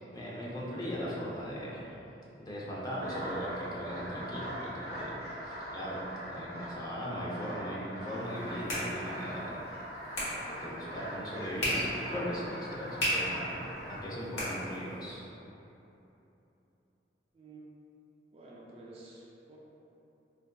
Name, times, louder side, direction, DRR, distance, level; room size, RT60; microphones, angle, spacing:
voice 1, 0.1-1.8 2.4-5.2 5.4-9.6 10.4-15.2, equal, 20° left, -7 dB, 0.5 m, -38 dB
sound 1, 3.0-14.0, equal, 60° left, 1.2 m, -42 dB
sound 2, 8.1-15.2, equal, 85° left, 1.1 m, -37 dB
voice 2, 18.3-19.6, right 2 dB, 35° right, -4 dB, 0.3 m, -51 dB
4.5 x 2.5 x 2.2 m, 3.0 s
head